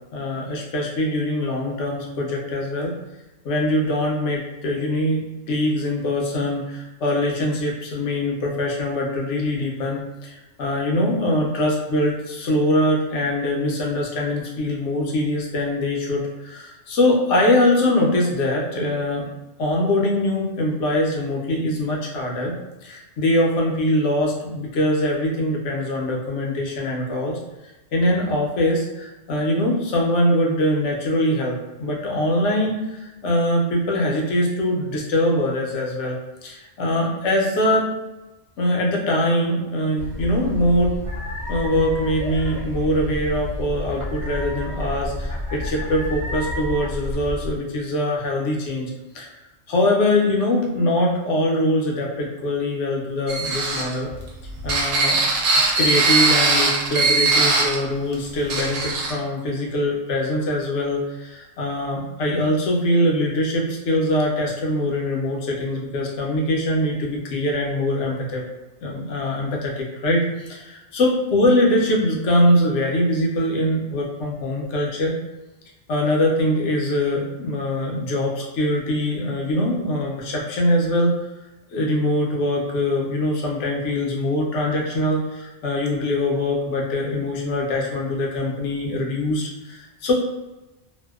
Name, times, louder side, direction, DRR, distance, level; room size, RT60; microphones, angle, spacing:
voice 1, 0.1-2.9 3.4-19.2 19.6-22.5 22.8-27.4 27.9-37.9 38.6-40.9 41.5-49.3 49.7-54.1 54.6-55.2 55.8-68.4 68.8-75.1 75.9-81.1 81.7-90.1, left 1 dB, 80° left, -1 dB, 0.9 m, -22 dB
sound 1, 40.0-47.5, left 1 dB, 45° right, 0.4 m, -30 dB
sound 2, 53.3-57.8 58.1-58.2 58.5-59.1, right 3 dB, 75° right, 0.8 m, -20 dB
2.6 x 2.1 x 2.3 m, 1.0 s
omnidirectional pair, 1.2 m